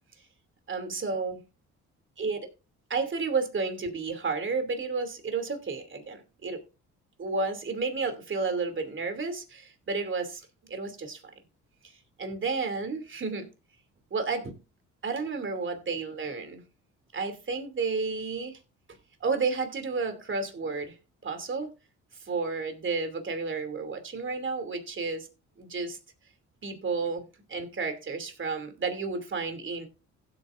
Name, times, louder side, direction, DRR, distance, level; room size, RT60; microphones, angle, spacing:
voice 1, 0.7-1.4 2.2-2.5 2.9-6.6 7.2-10.4 10.7-11.2 12.2-13.5 14.1-14.5 15.0-16.6 17.1-18.6 19.2-20.9 21.2-21.7 22.2-25.3 25.6-26.0 26.6-27.2 27.5-29.9, right 4 dB, 40° right, 2.7 m, -31 dB
16.0 x 8.6 x 2.5 m
cardioid pair, 90°, 30 cm